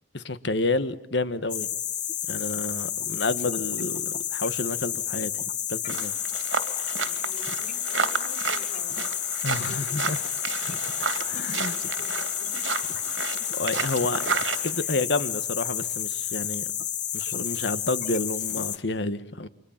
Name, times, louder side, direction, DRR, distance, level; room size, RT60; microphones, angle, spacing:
voice 1, 0.1-1.7 2.3-5.3 5.7-6.1 9.4-10.2 11.2-11.7 13.5-14.4 14.6-16.7 17.1-19.5, left 2 dB, 60° left, 1.5 m, -29 dB
sound 1, 1.5-18.8, left 10 dB, 40° left, 1.3 m, -30 dB
sound 2, 5.9-14.7, right 6 dB, 80° right, 2.5 m, -32 dB
voice 2, 7.0-9.1 9.7-10.0 10.6-10.7 11.5-13.1 14.8-15.0, right 1 dB, 60° right, 4.0 m, -48 dB
30.0 x 24.5 x 7.3 m
head